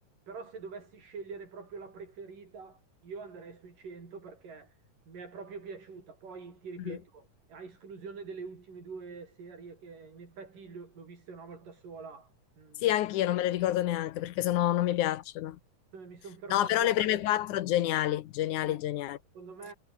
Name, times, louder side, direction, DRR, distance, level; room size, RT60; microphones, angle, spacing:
voice 1, 0.3-4.7 5.1-12.3 12.6-12.9 15.9-17.3 18.7-18.8 19.4-19.7, right 5 dB, 80° right, 7.2 m, -45 dB
voice 2, 12.8-15.6 16.5-19.2, left 13 dB, 75° left, 2.2 m, -28 dB
omnidirectional pair, 3.8 m